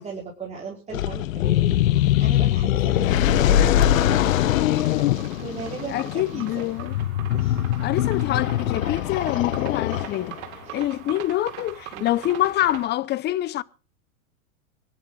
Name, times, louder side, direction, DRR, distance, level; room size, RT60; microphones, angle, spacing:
voice 1, 0.0-4.5 5.1-6.6 7.3-7.7 10.6-10.9 11.9-12.1, right 4 dB, 15° right, 5.1 m, -37 dB
sound 1, 0.9-10.4, left 12 dB, 70° left, 1.2 m, -22 dB
sound 2, 3.2-12.9, right 11 dB, 50° right, 4.3 m, -42 dB
voice 2, 5.9-6.9 7.8-10.4 10.7-13.6, left 14 dB, 25° left, 0.8 m, -25 dB
25.0 x 11.0 x 4.0 m
hypercardioid pair, 120°, 42 cm